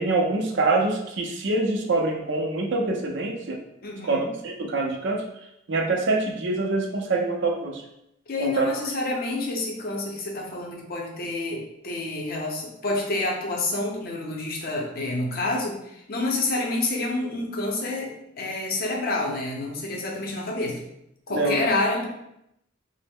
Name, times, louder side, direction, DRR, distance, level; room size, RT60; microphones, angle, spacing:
voice 1, 0.0-3.6 4.0-5.2 5.7-7.8 8.4-8.7 21.3-21.7, right 3 dB, 65° right, 1 dB, 0.5 m, -25 dB
voice 2, 3.8-4.3 8.3-20.8 21.3-22.1, left 2 dB, 50° left, -1 dB, 0.6 m, -28 dB
3.0 x 2.0 x 3.4 m, 0.80 s
head